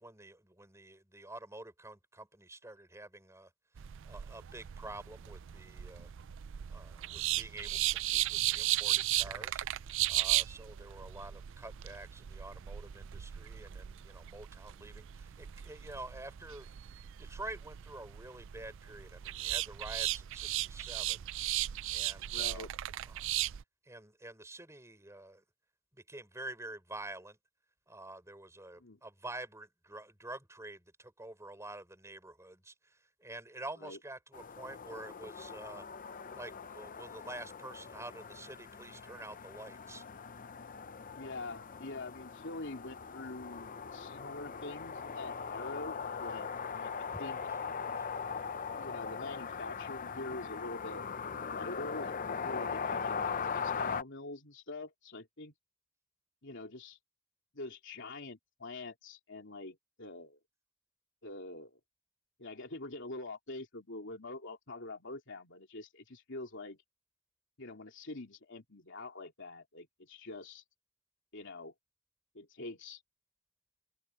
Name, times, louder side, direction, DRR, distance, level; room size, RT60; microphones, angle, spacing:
voice 1, 0.0-3.5 4.0-6.1 6.7-9.6 10.1-16.7 17.2-21.3 21.9-22.7 23.1-23.3 23.8-25.4 25.9-27.4 27.9-35.9 36.3-40.0 47.1-47.2 47.5-47.6 48.0-48.1, right 2 dB, 15° right, 6.1 m, -48 dB
sound 1, 3.8-23.6, right 14 dB, 60° right, 0.4 m, -36 dB
voice 2, 22.3-22.7 28.8-29.0 33.8-34.0 41.1-47.4 48.8-51.0 51.4-55.5 56.4-57.0 57.5-60.4 61.2-61.8 62.4-66.8 67.6-70.6 71.3-71.7 72.3-73.0, left 2 dB, 60° left, 3.3 m, -45 dB
sound 2, 34.3-54.0, left 6 dB, 40° left, 0.7 m, -40 dB
open air
head